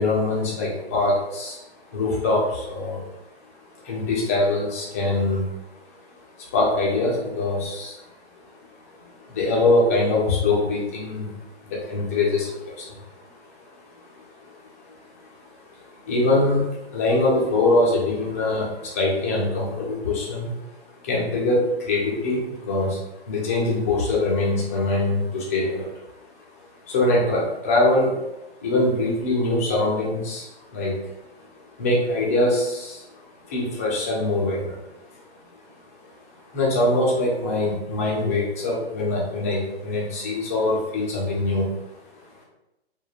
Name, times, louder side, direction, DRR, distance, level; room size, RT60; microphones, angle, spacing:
voice 1, 0.0-1.6 1.9-3.2 3.7-8.1 9.0-11.3 11.7-13.2 14.0-14.6 14.8-20.5 20.8-23.0 23.3-25.9 26.8-28.1 28.6-34.8 35.1-35.2 35.5-35.6 36.5-42.0, left 2 dB, 15° left, -4 dB, 0.3 m, -24 dB
3.2 x 2.1 x 2.3 m, 0.92 s
figure-of-eight pair, 120°, 32 cm